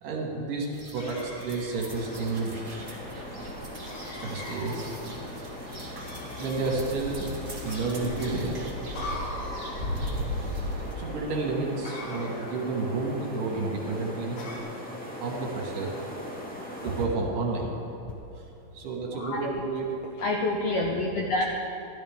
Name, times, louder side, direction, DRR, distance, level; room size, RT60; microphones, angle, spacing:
voice 1, 0.0-2.5 4.2-4.8 6.4-7.3 7.6-8.6 11.0-14.4 15.2-15.9 16.8-17.7 18.4-18.5 18.7-19.9, right 3 dB, 75° right, -1 dB, 3.3 m, -30 dB
sound 1, 0.7-10.9, equal, 25° right, 1.1 m, -37 dB
sound 2, 1.0-2.0 3.9-4.8 6.0-6.7 7.6-8.3 8.9-9.9 11.8-12.6 14.4-14.6, left 1 dB, 50° left, 2.2 m, -41 dB
sound 3, 1.9-17.1, equal, 5° left, 0.6 m, -40 dB
voice 2, 19.1-19.6 20.2-21.4, left 2 dB, 75° left, 0 dB, 1.5 m, -28 dB
15.5 x 12.0 x 3.6 m, 2.8 s
omnidirectional pair, 3.8 m